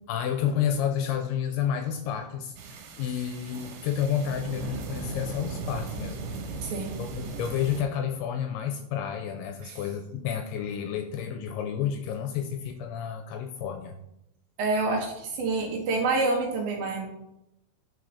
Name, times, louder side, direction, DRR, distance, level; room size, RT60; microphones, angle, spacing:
voice 1, 0.1-6.3 6.9-13.9, left 8 dB, 80° left, 6 dB, 2.4 m, -30 dB
sound 1, 2.6-7.8, right 3 dB, 90° right, 3.5 m, -37 dB
voice 2, 6.6-6.9 9.6-9.8 14.6-17.1, right 3 dB, 70° right, 1 dB, 2.5 m, -27 dB
9.1 x 4.6 x 4.9 m, 0.84 s
omnidirectional pair, 5.0 m